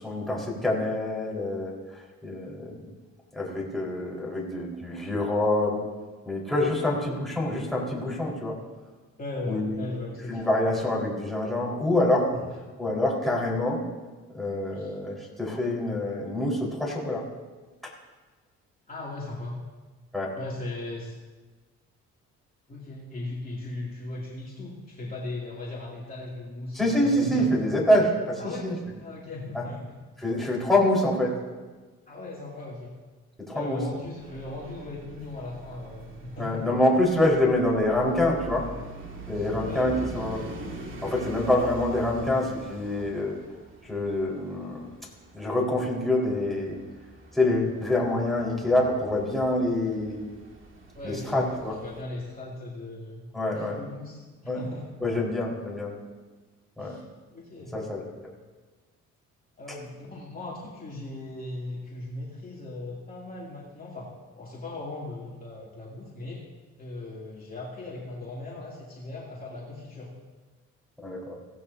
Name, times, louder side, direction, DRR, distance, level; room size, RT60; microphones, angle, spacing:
voice 1, 0.0-2.8 3.3-5.8 6.3-8.6 9.5-9.7 10.3-12.3 12.8-13.8 14.3-17.2 20.1-20.4 26.7-28.7 29.5-29.6 30.2-31.4 33.5-33.8 36.4-38.7 39.3-40.4 41.0-43.4 43.8-44.8 45.3-46.8 47.3-50.2 51.0-51.8 53.3-53.8 54.5-54.6 55.0-55.9 56.8-57.0 57.7-58.0 71.0-71.4, left 1 dB, ahead, -4 dB, 4.4 m, -26 dB
voice 2, 9.2-10.4 14.7-14.9 18.9-19.6 20.4-21.1 22.7-27.6 28.4-28.7 29.0-29.8 32.1-32.9 33.5-36.6 39.3-40.1 50.9-51.5 51.8-54.9 56.8-57.0 57.3-57.7 59.6-66.4 66.8-70.1, left 2 dB, 30° left, -5 dB, 2.8 m, -38 dB
sound 1, 34.2-52.0, right 2 dB, 40° right, 2.2 m, -44 dB
17.0 x 15.5 x 2.8 m, 1.3 s
cardioid pair, 90°, 30 cm